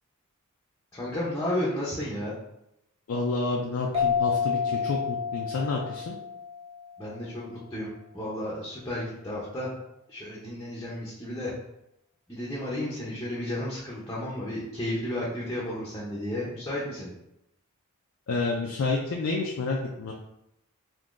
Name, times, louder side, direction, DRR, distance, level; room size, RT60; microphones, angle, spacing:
voice 1, 0.9-2.3 7.0-9.7 10.1-11.5 12.3-17.1, left 1 dB, 15° left, -7 dB, 0.6 m, -33 dB
voice 2, 3.1-6.1 18.3-20.1, left 3 dB, 65° left, -1 dB, 0.4 m, -29 dB
sound 1, 3.9-7.2, left 6 dB, 25° right, 0.6 m, -29 dB
3.7 x 2.6 x 2.4 m, 0.84 s
head